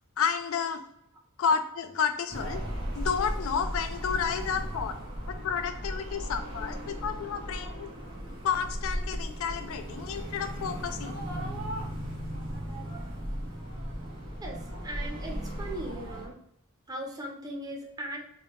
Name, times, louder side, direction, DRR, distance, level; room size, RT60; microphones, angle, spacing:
voice 1, 0.2-0.8 1.4-2.6 2.9-5.0 5.3-7.9 8.4-11.2, left 6 dB, 70° left, 8 dB, 0.3 m, -31 dB
sound 1, 2.3-16.3, equal, 70° right, 1.3 m, -36 dB
voice 2, 14.8-16.4 16.9-18.2, right 1 dB, 20° right, 0 dB, 0.7 m, -38 dB
3.9 x 2.2 x 3.5 m, 0.75 s
head